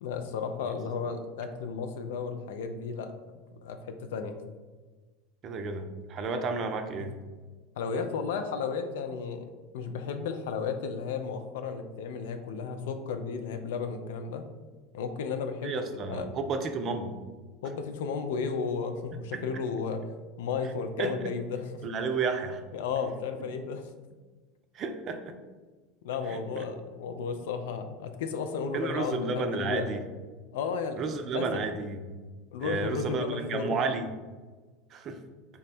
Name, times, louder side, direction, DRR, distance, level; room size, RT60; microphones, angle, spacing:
voice 1, 0.0-3.1 3.6-4.4 7.0-7.1 7.8-14.4 14.9-16.3 17.6-20.0 20.4-21.8 22.7-23.9 26.0-30.0 30.5-31.0 31.3-31.7 32.5-33.8, left 5 dB, 70° left, 7 dB, 0.3 m, -33 dB
voice 2, 5.4-7.2 15.6-17.1 19.3-19.4 21.0-21.2 21.8-22.6 24.7-25.3 26.3-26.7 28.7-30.0 31.0-32.2 32.6-34.1 34.9-35.2, right 4 dB, 40° right, 7 dB, 0.4 m, -32 dB
3.5 x 2.1 x 4.1 m, 1.3 s
figure-of-eight pair, 75°, 0 cm